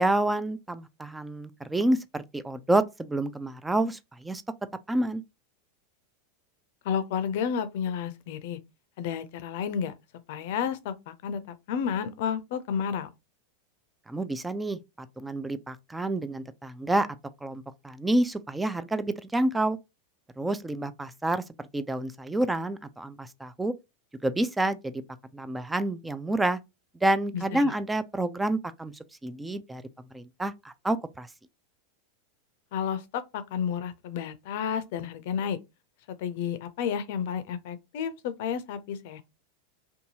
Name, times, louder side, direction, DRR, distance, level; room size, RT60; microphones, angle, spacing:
voice 1, 0.0-4.4 4.9-5.2 14.1-17.1 17.4-19.8 20.4-21.4 21.7-23.7 24.2-25.0 25.3-26.6 27.0-28.9 29.2-29.8 30.1-31.3, right 1 dB, 10° right, 0.3 m, -28 dB
voice 2, 6.8-8.6 9.0-9.9 10.3-11.4 11.7-13.1 27.3-27.7 32.7-35.6 36.2-39.2, left 7 dB, 65° left, 0.5 m, -31 dB
2.7 x 2.3 x 2.8 m
hypercardioid pair, 115°, 0 cm